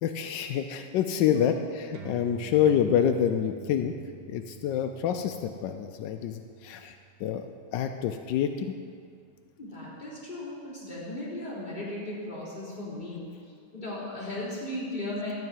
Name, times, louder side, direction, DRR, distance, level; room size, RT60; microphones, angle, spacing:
voice 1, 0.0-1.5 1.8-3.9 4.3-6.9 7.2-7.5 7.7-8.7, left 9 dB, 85° left, 7 dB, 1.3 m, -27 dB
sound 1, 1.9-8.8, right 11 dB, 80° right, 1.7 m, -49 dB
voice 2, 9.6-15.3, left 1 dB, 25° left, -8 dB, 3.8 m, -37 dB
12.5 x 5.7 x 9.0 m, 2.2 s
omnidirectional pair, 1.9 m